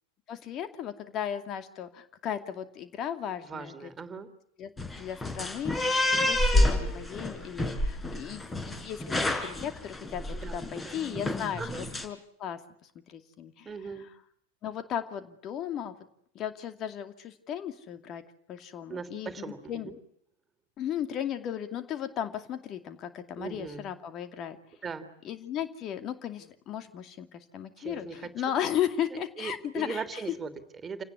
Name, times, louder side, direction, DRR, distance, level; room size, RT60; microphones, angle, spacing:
voice 1, 0.3-3.9 4.6-4.7 5.0-6.0 6.2-11.6 12.0-12.6 13.1-13.7 14.0-14.1 14.6-15.9 16.3-18.2 18.5-19.9 20.8-24.6 25.2-30.2, left 9 dB, 30° left, 9 dB, 2.5 m, -35 dB
voice 2, 3.4-4.3 10.3-11.0 11.6-11.8 13.6-14.1 18.9-20.0 23.4-23.9 24.8-25.1 27.8-28.3 29.4-31.0, right 5 dB, 20° right, 10 dB, 3.1 m, -39 dB
sound 1, 4.8-12.0, left 1 dB, 10° left, 4.4 m, -28 dB
29.0 x 18.5 x 9.7 m, 0.71 s
figure-of-eight pair, 90°, 0 cm